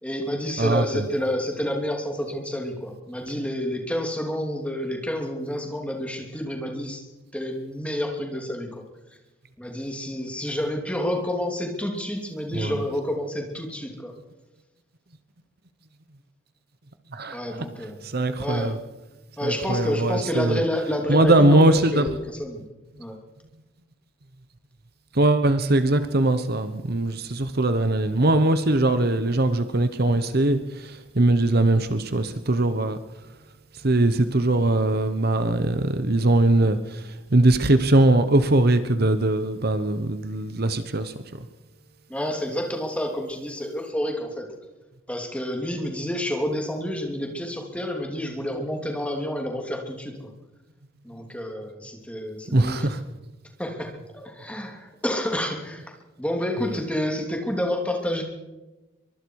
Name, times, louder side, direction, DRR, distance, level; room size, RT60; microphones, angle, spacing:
voice 1, 0.0-7.0 7.3-8.8 9.6-14.1 17.3-18.1 18.4-18.8 19.4-22.7 23.0-23.2 42.1-44.5 45.1-50.3 51.0-52.9 53.6-58.2, left 1 dB, 5° left, 2 dB, 3.1 m, -29 dB
voice 2, 0.6-1.0 12.5-12.8 17.1-17.4 18.0-18.8 19.4-20.6 21.1-22.1 25.1-33.0 33.8-41.1 52.5-53.0 56.7-56.8, right 2 dB, 50° right, 10 dB, 1.1 m, -21 dB
24.0 x 23.0 x 4.8 m, 1.1 s
head